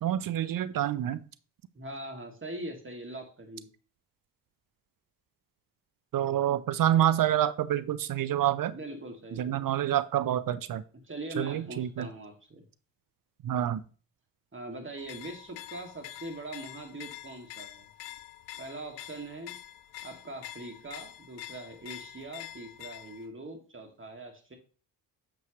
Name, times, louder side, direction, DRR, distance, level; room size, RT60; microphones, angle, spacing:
voice 1, 0.0-1.2 6.1-8.7 9.4-10.8 11.4-12.1 13.4-13.8, right 11 dB, 45° right, 15 dB, 0.7 m, -27 dB
voice 2, 1.7-3.7 8.7-9.7 11.0-12.6 14.5-17.9 18.6-19.6 20.0-24.6, right 1 dB, 25° right, 3 dB, 2.5 m, -42 dB
sound 1, 15.0-23.3, left 14 dB, 75° left, 0.7 m, -46 dB
8.1 x 6.1 x 3.2 m, 0.38 s
hypercardioid pair, 45°, 48 cm